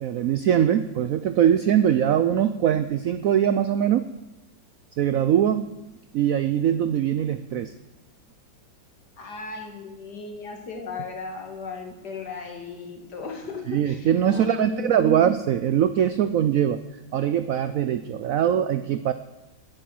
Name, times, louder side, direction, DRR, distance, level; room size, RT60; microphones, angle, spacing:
voice 1, 0.0-4.1 5.0-5.7 6.1-7.7 13.7-16.8 17.1-19.1, right 10 dB, 85° right, 12 dB, 0.7 m, -22 dB
voice 2, 9.2-15.2, left 4 dB, 60° left, 3 dB, 2.5 m, -36 dB
11.0 x 8.9 x 7.7 m, 1.0 s
omnidirectional pair, 2.1 m